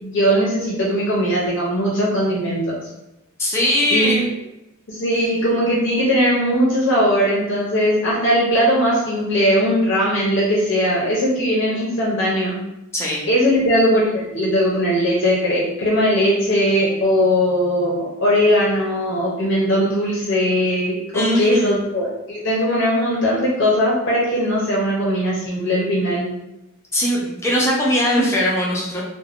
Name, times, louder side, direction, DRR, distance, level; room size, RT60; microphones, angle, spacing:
voice 1, 0.0-2.8 3.9-4.2 4.9-12.6 13.3-26.3, equal, 60° left, -4 dB, 0.6 m, -19 dB
voice 2, 3.4-4.3 12.9-13.2 21.1-21.8 26.9-29.0, equal, 15° left, -5 dB, 0.5 m, -20 dB
3.2 x 2.1 x 2.4 m, 0.90 s
head